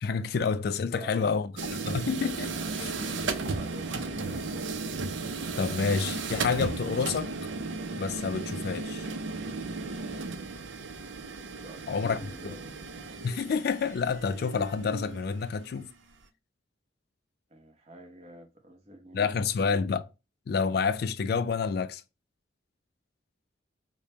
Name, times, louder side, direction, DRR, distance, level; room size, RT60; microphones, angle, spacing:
voice 1, 0.0-2.5 5.6-7.3 8.0-9.1 11.9-12.5 13.2-15.9 19.1-20.1 20.5-22.0, left 5 dB, 55° left, 0.3 m, -29 dB
voice 2, 1.0-1.3 2.5-4.7 11.6-12.8 17.5-19.8, right 1 dB, 35° right, 0.8 m, -46 dB
sound 1, 1.6-15.9, right 3 dB, 80° right, 0.6 m, -35 dB
5.0 x 2.1 x 2.8 m
head